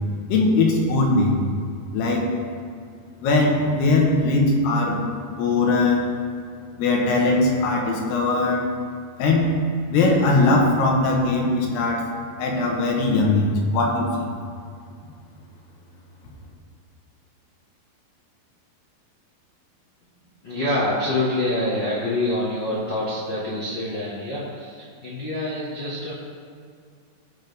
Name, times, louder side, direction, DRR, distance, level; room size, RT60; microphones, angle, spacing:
voice 1, 0.3-1.4 1.9-2.2 3.2-5.0 5.3-6.0 6.8-8.6 9.2-9.5 9.9-12.0 12.4-14.1, left 2 dB, 90° left, -1 dB, 3.3 m, -20 dB
voice 2, 20.4-26.1, left 1 dB, 65° left, -6 dB, 1.0 m, -26 dB
17.5 x 6.0 x 3.5 m, 2.2 s
omnidirectional pair, 4.5 m